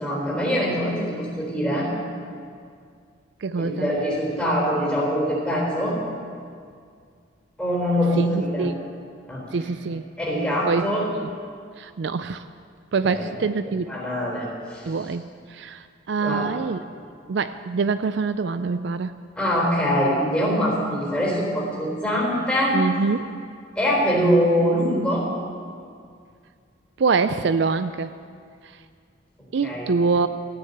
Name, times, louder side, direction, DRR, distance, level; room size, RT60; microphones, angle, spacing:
voice 1, 0.0-1.9 3.6-6.0 7.6-8.7 9.3-9.5 10.2-11.0 13.1-13.2 13.9-14.9 16.2-16.5 19.4-22.8 23.8-25.3 29.6-29.9, equal, 5° left, -4 dB, 4.0 m, -23 dB
voice 2, 3.4-3.9 8.2-8.7 9.5-10.0 10.7-10.9 11.1-11.3 11.8-12.4 12.9-13.9 14.9-15.2 15.5-16.8 17.3-19.1 22.7-23.3 27.0-28.1 29.5-30.3, right 4 dB, 60° right, 11 dB, 0.4 m, -24 dB
14.5 x 9.6 x 7.9 m, 2.2 s
head